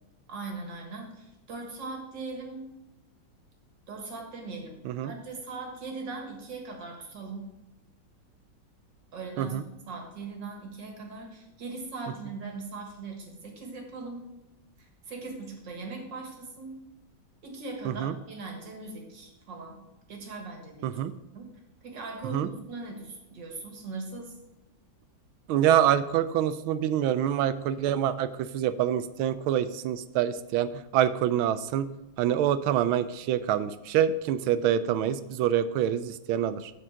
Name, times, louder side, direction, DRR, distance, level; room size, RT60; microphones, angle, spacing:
voice 1, 0.3-2.7 3.9-7.5 9.1-14.3 14.8-16.8 17.4-19.8 20.1-21.0 21.3-21.5 21.8-24.3, right 3 dB, 60° right, 2 dB, 2.3 m, -40 dB
voice 2, 25.5-31.9 32.2-36.7, right 10 dB, 85° right, 13 dB, 1.4 m, -26 dB
7.3 x 6.7 x 5.7 m, 0.96 s
omnidirectional pair, 2.2 m